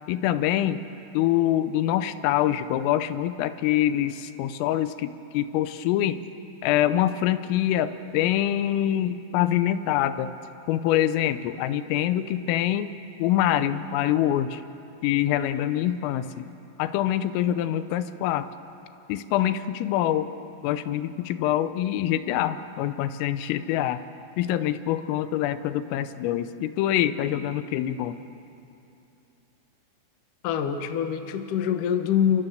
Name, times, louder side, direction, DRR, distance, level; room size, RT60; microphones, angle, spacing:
voice 1, 0.1-0.8 1.1-6.2 6.6-10.3 10.7-12.9 13.2-14.6 15.0-16.5 16.8-18.5 19.1-20.3 20.6-24.0 24.4-28.2, left 12 dB, 85° left, 12 dB, 3.4 m, -25 dB
voice 2, 30.4-32.4, left 8 dB, 65° left, 6 dB, 2.1 m, -25 dB
30.0 x 24.5 x 7.9 m, 2.8 s
omnidirectional pair, 5.9 m